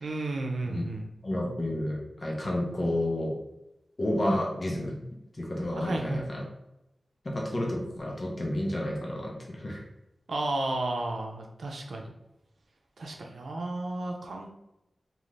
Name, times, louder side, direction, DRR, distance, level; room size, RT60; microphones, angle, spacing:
voice 1, 0.0-1.1 4.2-4.4 5.7-6.3 10.3-12.1 13.0-14.5, right 2 dB, 85° right, 1 dB, 0.5 m, -33 dB
voice 2, 1.2-3.4 4.0-4.9 5.4-6.4 7.2-9.8, left 1 dB, 40° left, -1 dB, 0.8 m, -30 dB
2.6 x 2.5 x 3.2 m, 0.89 s
wide cardioid pair, 115°, 0 cm